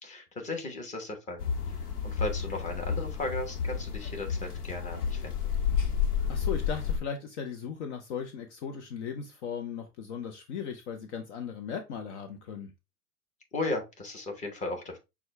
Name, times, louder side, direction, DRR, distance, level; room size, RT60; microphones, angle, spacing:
voice 1, 0.0-1.4 1.7-5.3 13.5-15.0, left 2 dB, 15° left, 1.1 m, -36 dB
sound 1, 1.4-7.0, left 7 dB, 75° left, 1.2 m, -31 dB
voice 2, 6.3-12.7, left 7 dB, 45° left, 0.7 m, -37 dB
6.0 x 2.4 x 3.2 m
hypercardioid pair, 110°, 47 cm